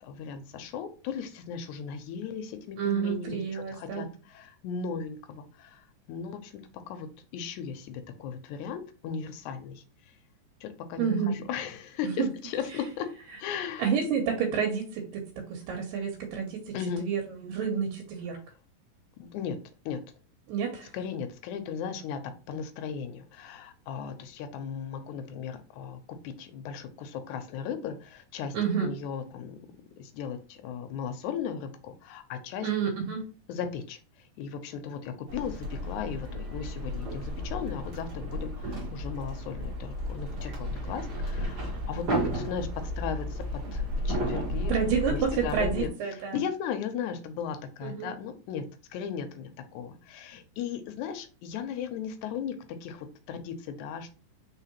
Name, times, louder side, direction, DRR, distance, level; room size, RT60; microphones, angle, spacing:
voice 1, 0.0-6.5 6.9-9.8 10.6-13.1 13.4-13.9 16.7-17.1 19.2-19.6 19.9-20.0 20.9-22.2 22.5-28.6 28.8-32.7 33.5-43.4 43.7-44.8 45.1-54.1, left 7 dB, 80° left, 7 dB, 1.8 m, -37 dB
voice 2, 2.8-4.1 11.0-11.4 12.2-12.3 13.8-18.4 20.5-20.9 28.5-28.9 32.6-33.3 44.7-46.4 47.8-48.1, right 7 dB, 85° right, 3 dB, 2.5 m, -29 dB
sound 1, 35.3-45.9, equal, 40° right, 1.6 m, -33 dB
4.8 x 3.7 x 2.9 m, 0.36 s
omnidirectional pair, 3.9 m